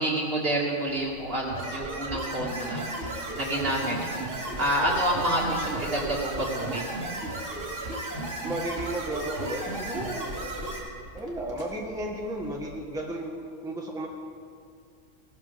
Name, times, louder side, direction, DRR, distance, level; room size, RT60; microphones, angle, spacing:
voice 1, 0.0-6.9, right 1 dB, 45° right, -5 dB, 2.9 m, -29 dB
sound 1, 0.9-12.8, right 1 dB, 15° left, 2.1 m, -47 dB
sound 2, 1.5-10.8, right 2 dB, 65° right, 3.0 m, -34 dB
voice 2, 8.4-10.3 11.1-14.1, right 1 dB, 5° right, -2 dB, 1.4 m, -34 dB
17.5 x 13.0 x 3.6 m, 2.3 s
omnidirectional pair, 1.4 m